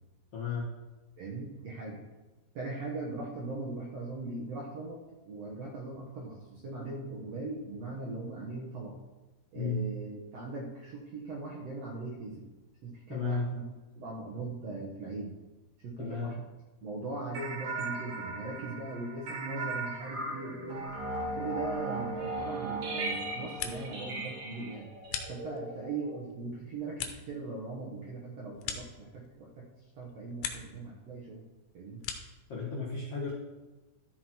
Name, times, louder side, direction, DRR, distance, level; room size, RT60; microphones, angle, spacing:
voice 1, 0.3-0.7 9.5-9.8 13.1-13.5 16.0-16.3 32.5-33.3, left 5 dB, 55° left, -5 dB, 1.7 m, -33 dB
voice 2, 1.2-2.0 2.5-8.9 9.5-12.4 12.8-13.6 13.9-15.3 15.8-16.4 16.8-20.9 21.3-24.9 25.3-29.7 29.9-31.5 31.7-32.0, right 3 dB, 60° right, -3 dB, 1.7 m, -40 dB
sound 1, 17.3-26.3, right 2 dB, 45° right, 2.3 m, -37 dB
sound 2, 23.3-24.1 24.4-25.9 26.3-29.6 29.9-30.8 31.1-32.5, left 8 dB, 90° left, 3.1 m, -42 dB
12.5 x 6.2 x 4.5 m, 1.1 s
omnidirectional pair, 4.7 m